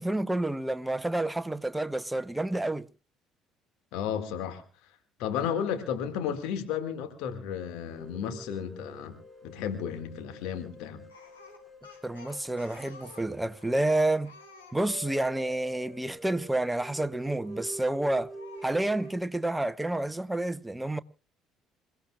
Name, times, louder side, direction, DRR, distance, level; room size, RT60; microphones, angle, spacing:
voice 1, 0.0-2.9 12.0-14.3 14.7-18.3 18.6-21.0, right 1 dB, 10° right, 0.8 m, -29 dB
voice 2, 3.9-4.6 5.2-9.1 9.4-11.0, left 8 dB, 65° left, 1.9 m, -33 dB
sound 1, 7.9-19.2, right 1 dB, 10° left, 4.7 m, -47 dB
Speech, 11.1-15.4 17.4-17.9 18.3-19.2, left 3 dB, 85° left, 6.1 m, -52 dB
27.5 x 16.5 x 2.4 m
figure-of-eight pair, 55°, 0 cm